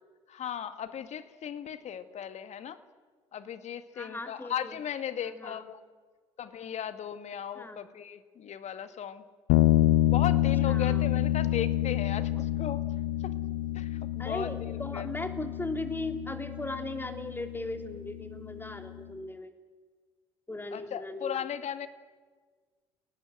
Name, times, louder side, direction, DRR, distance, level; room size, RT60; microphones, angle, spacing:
voice 1, 0.3-2.8 3.3-5.8 6.4-9.2 10.1-12.8 13.2-13.3 13.7-15.1 20.7-21.9, left 9 dB, 50° left, 11 dB, 2.0 m, -37 dB
voice 2, 4.0-4.7 5.3-5.7 7.6-7.8 10.6-11.1 14.2-19.5 20.5-21.4, left 2 dB, 15° left, 6 dB, 3.5 m, -38 dB
sound 1, 9.5-19.0, left 13 dB, 70° left, 1.0 m, -28 dB
28.5 x 19.0 x 8.0 m, 1.5 s
figure-of-eight pair, 55°, 15 cm